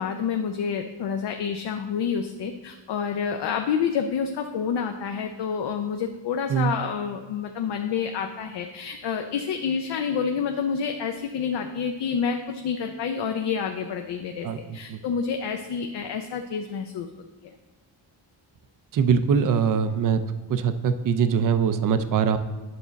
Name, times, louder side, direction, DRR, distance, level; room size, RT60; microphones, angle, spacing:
voice 1, 0.0-17.1 17.4-17.5, left 6 dB, 60° left, 5 dB, 0.5 m, -28 dB
voice 2, 14.4-15.0 18.9-20.2 20.5-22.4, right 7 dB, 45° right, 11 dB, 0.5 m, -22 dB
9.5 x 6.2 x 4.0 m, 1.2 s
wide cardioid pair, 170°, 46 cm